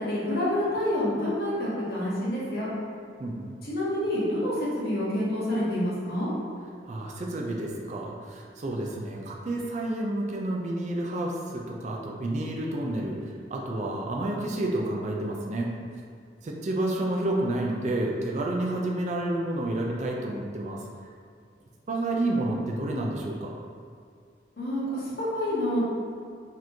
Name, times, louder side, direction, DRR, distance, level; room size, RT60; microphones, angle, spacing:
voice 1, 0.0-2.7 3.6-6.3 24.6-25.8, left 1 dB, 60° left, -8 dB, 1.2 m, -28 dB
voice 2, 3.2-3.5 6.8-13.2 13.5-15.7 16.4-20.8 21.9-23.6, right 1 dB, 40° right, -1 dB, 0.4 m, -30 dB
4.1 x 3.1 x 2.7 m, 2.3 s
head